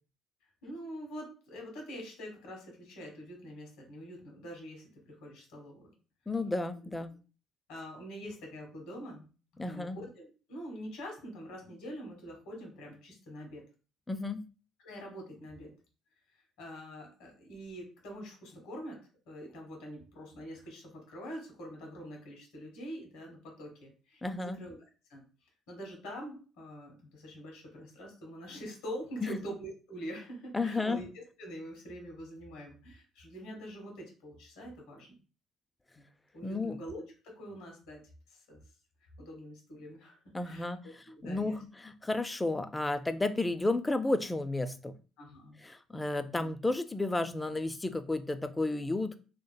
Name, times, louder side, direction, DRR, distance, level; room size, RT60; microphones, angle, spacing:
voice 1, 0.6-5.9 7.7-9.3 9.5-13.6 14.8-15.7 16.6-19.0 19.3-24.8 25.1-25.2 25.7-35.1 35.9-36.0 36.3-38.0 38.3-38.6 39.2-40.2 40.4-41.6 45.2-45.6 46.2-46.5, equal, 85° left, 2 dB, 1.2 m, -45 dB
voice 2, 6.3-7.1 9.6-10.0 14.1-14.4 24.2-24.6 29.2-29.4 30.5-31.0 36.4-36.8 40.3-40.8 41.2-44.9 45.6-49.2, left 2 dB, 15° left, 10 dB, 0.3 m, -32 dB
2.7 x 2.4 x 2.2 m, 0.35 s
supercardioid pair, 75°, 0 cm